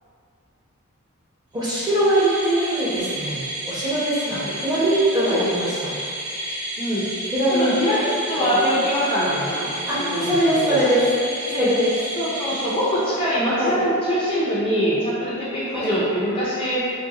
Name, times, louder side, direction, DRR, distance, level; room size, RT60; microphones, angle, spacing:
voice 1, 1.5-6.0 7.3-7.7 8.4-8.5 9.9-11.1 11.4-12.0 13.6-13.8 15.7-16.0, right 1 dB, 20° right, -9 dB, 0.9 m, -22 dB
sound 1, 1.6-13.4, right 1 dB, 85° right, 1.3 m, -31 dB
voice 2, 4.2-4.5 5.3-5.5 6.8-7.1 7.5-9.7 10.0-10.8 11.5-11.7 12.2-16.9, equal, 25° left, -8 dB, 0.5 m, -23 dB
3.8 x 2.2 x 3.7 m, 2.4 s
head